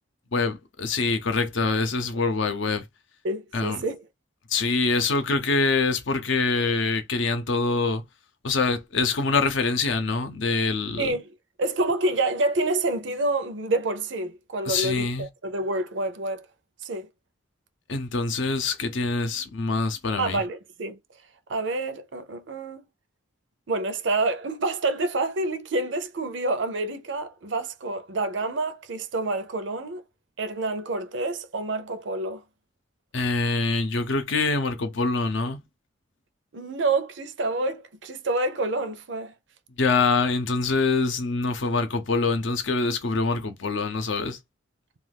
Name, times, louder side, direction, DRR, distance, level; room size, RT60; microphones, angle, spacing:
voice 1, 0.3-2.8 3.5-3.8 4.5-8.0 8.4-11.2 14.7-15.3 17.9-20.4 33.1-35.6 39.8-44.4, left 3 dB, 70° left, 0.6 m, -25 dB
voice 2, 3.2-4.0 11.0-11.3 11.6-16.5 16.8-17.1 20.2-21.0 21.5-22.9 23.7-30.0 30.4-32.4 36.5-39.3, right 2 dB, 65° right, 0.6 m, -28 dB
2.4 x 2.3 x 3.4 m
head